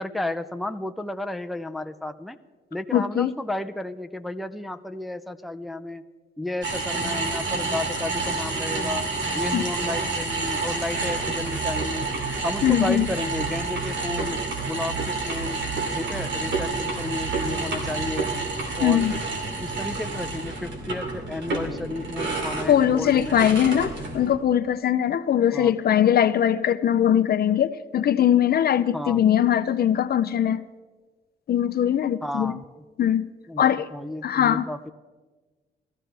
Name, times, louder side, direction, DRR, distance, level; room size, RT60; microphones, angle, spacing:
voice 1, 0.0-2.4 2.7-6.0 6.4-9.0 9.3-12.1 12.4-14.4 14.7-15.6 15.9-18.3 18.8-19.0 19.6-23.4 25.5-25.7 28.9-29.2 32.2-32.6 33.5-34.9, left 2 dB, ahead, 0.6 m, -32 dB
voice 2, 2.9-3.3 9.5-9.6 12.6-13.1 18.8-19.2 22.7-30.6 31.5-32.5 33.0-33.3 33.6-33.9 34.2-34.7, left 10 dB, 50° left, 0.6 m, -21 dB
sound 1, 6.6-24.3, right 3 dB, 70° right, 2.5 m, -29 dB
19.5 x 14.0 x 3.4 m
cardioid pair, 90°, 20 cm